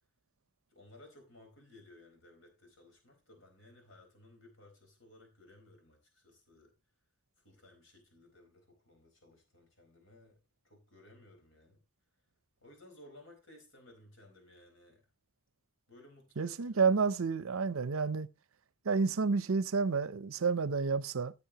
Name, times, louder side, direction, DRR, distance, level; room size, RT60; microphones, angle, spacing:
voice 1, 0.7-6.7 7.4-10.4 10.6-11.8 12.6-15.1 15.9-17.0, left 1 dB, 65° left, 4.4 m, -58 dB
voice 2, 16.4-18.3 18.8-21.3, right 5 dB, 80° right, 0.6 m, -30 dB
15.0 x 7.2 x 2.9 m
head